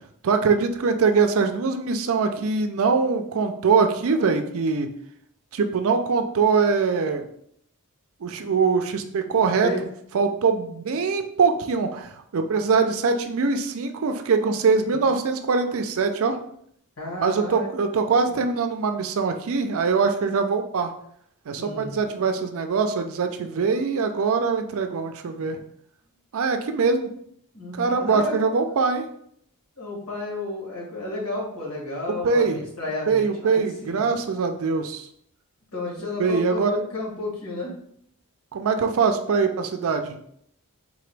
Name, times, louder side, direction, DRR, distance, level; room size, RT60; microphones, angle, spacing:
voice 1, 0.2-4.9 5.5-7.2 8.2-9.7 10.1-16.4 17.2-20.9 21.5-25.6 26.3-27.1 27.8-29.0 32.1-32.6 33.1-35.1 36.2-36.7 38.5-40.2, right 5 dB, 65° right, 6 dB, 0.4 m, -23 dB
voice 2, 17.0-17.7 18.2-18.3 21.6-22.0 27.5-28.4 29.8-34.1 35.7-37.7, left 2 dB, 70° left, -3 dB, 1.6 m, -32 dB
3.9 x 2.9 x 3.3 m, 0.69 s
head